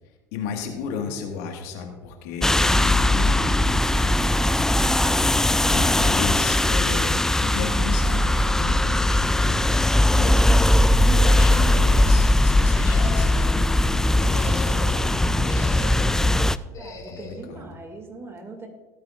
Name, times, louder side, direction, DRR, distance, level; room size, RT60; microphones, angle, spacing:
voice 1, 0.3-4.4 5.7-10.5 11.0-16.3 17.1-17.7, left 6 dB, 70° left, 3 dB, 1.7 m, -35 dB
sound 1, 2.4-16.6, left 1 dB, 5° left, 0.3 m, -19 dB
sound 2, 3.2-6.9, equal, 15° right, 3.7 m, -44 dB
sound 3, 11.2-12.1 12.7-13.6 14.1-15.0 15.4-16.2 16.7-17.4, left 4 dB, 40° left, 3.4 m, -39 dB
voice 2, 16.8-18.7, right 3 dB, 30° right, 5 dB, 2.2 m, -41 dB
17.0 x 8.7 x 2.5 m, 1.3 s
hypercardioid pair, 75°, 9 cm